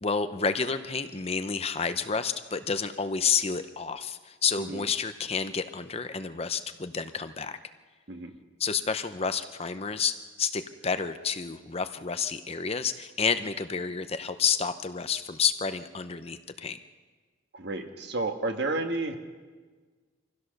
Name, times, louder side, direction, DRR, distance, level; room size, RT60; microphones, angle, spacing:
voice 1, 0.0-7.6 8.6-16.8, left 6 dB, 30° left, 10 dB, 0.6 m, -30 dB
voice 2, 17.5-19.2, right 2 dB, 55° right, 5 dB, 1.5 m, -31 dB
25.0 x 16.0 x 6.6 m, 1.4 s
head